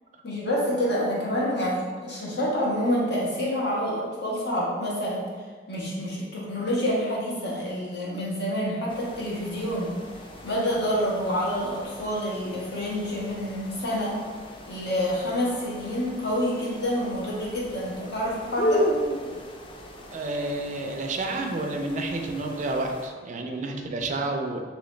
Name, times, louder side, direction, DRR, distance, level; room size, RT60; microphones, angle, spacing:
voice 1, 0.2-5.2 5.7-9.9 10.4-14.2 14.7-18.8, equal, 65° left, -5 dB, 1.1 m, -27 dB
sound 1, 8.9-23.1, equal, 30° left, 0.4 m, -35 dB
voice 2, 20.1-24.6, right 2 dB, 45° right, 3 dB, 0.4 m, -30 dB
3.8 x 3.0 x 3.2 m, 1.5 s
head